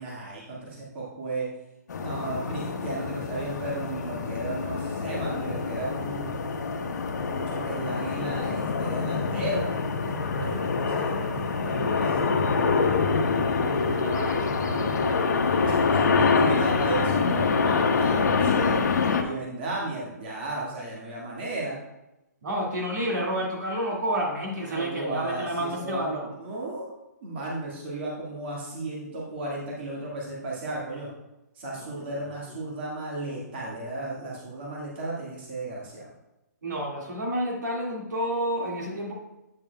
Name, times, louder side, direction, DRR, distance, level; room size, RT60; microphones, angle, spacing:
voice 1, 0.0-1.5 2.0-6.4 7.2-12.2 15.6-18.8 19.2-21.8 24.7-26.1 26.4-26.9 27.2-31.1 31.6-36.1, right 2 dB, 35° right, -4 dB, 1.7 m, -34 dB
Boeing Jet Passby in Spring Suburb, 1.9-19.2, left 4 dB, 75° left, 0.9 m, -25 dB
voice 2, 13.5-15.3 22.4-26.3 31.7-31.9 36.6-39.2, equal, 75° right, -1 dB, 2.0 m, -30 dB
8.6 x 7.1 x 2.2 m, 0.94 s
hypercardioid pair, 170°, 10 cm